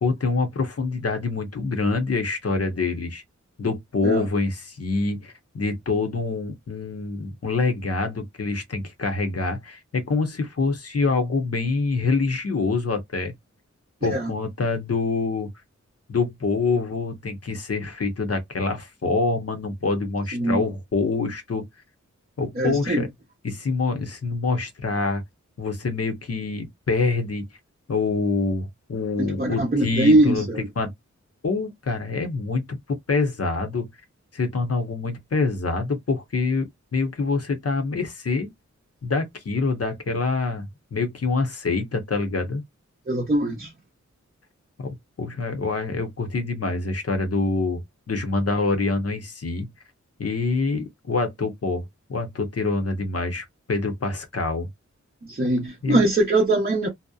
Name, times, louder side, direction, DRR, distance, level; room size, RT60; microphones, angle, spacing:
voice 1, 0.0-3.2 3.6-13.3 14.0-15.5 16.1-21.7 22.4-23.1 23.4-25.2 25.6-27.4 27.9-30.5 30.8-30.9 31.4-33.9 34.3-38.5 39.0-42.6 44.8-49.7 50.2-51.8 52.1-54.7 55.8-56.0, left 3 dB, 55° left, 0.7 m, -26 dB
voice 2, 22.6-23.0 29.2-30.7 43.1-43.7 55.3-56.9, right 1 dB, 30° right, 0.6 m, -21 dB
2.7 x 2.0 x 2.3 m
wide cardioid pair, 85°, 30 cm